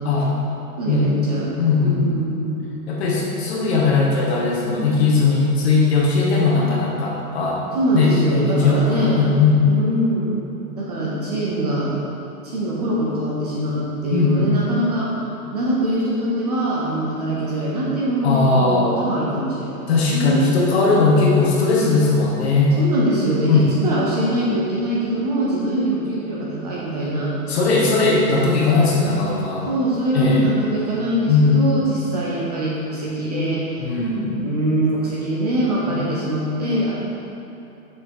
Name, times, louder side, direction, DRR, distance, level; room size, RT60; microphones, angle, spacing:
voice 1, 0.0-0.4 0.9-1.0 1.6-2.1 2.9-7.6 7.9-9.7 14.1-14.5 18.2-19.0 19.9-22.8 23.5-23.6 27.5-29.7 30.1-30.4 31.3-31.6 33.8-34.5 35.9-36.0, left 3 dB, 40° left, -3 dB, 1.4 m, -18 dB
voice 2, 0.8-2.6 7.7-9.2 9.6-10.3 10.8-11.9 12.4-15.1 15.5-20.5 22.8-27.4 28.2-28.4 29.7-33.8 34.4-37.0, right 1 dB, 25° right, -6 dB, 0.8 m, -23 dB
6.3 x 5.5 x 4.7 m, 2.8 s
hypercardioid pair, 170°, 47 cm